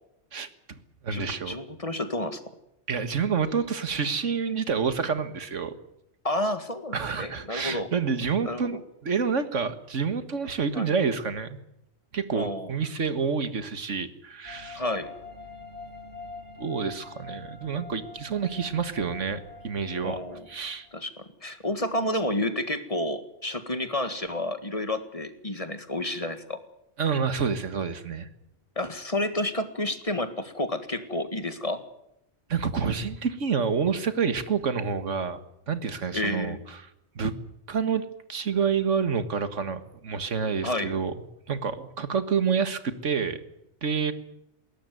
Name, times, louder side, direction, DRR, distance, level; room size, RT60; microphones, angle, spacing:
voice 1, 0.3-0.8 1.0-1.6 2.9-5.7 6.9-11.6 12.1-14.8 16.6-20.2 20.5-20.9 27.0-28.3 32.5-35.4 35.7-36.9 37.2-37.3 37.7-41.1 41.5-43.4 43.8-44.1, right 6 dB, 90° right, 11 dB, 1.9 m, -28 dB
voice 2, 1.1-2.4 6.2-7.9 8.5-8.7 10.7-10.9 12.3-12.7 14.8-15.1 20.0-20.5 20.9-26.6 28.8-31.8 36.1-36.6 40.6-40.9, left 1 dB, 30° left, 10 dB, 1.8 m, -30 dB
sound 1, 14.4-20.9, left 3 dB, 45° right, 3.3 m, -45 dB
21.0 x 17.5 x 9.3 m, 0.83 s
omnidirectional pair, 1.2 m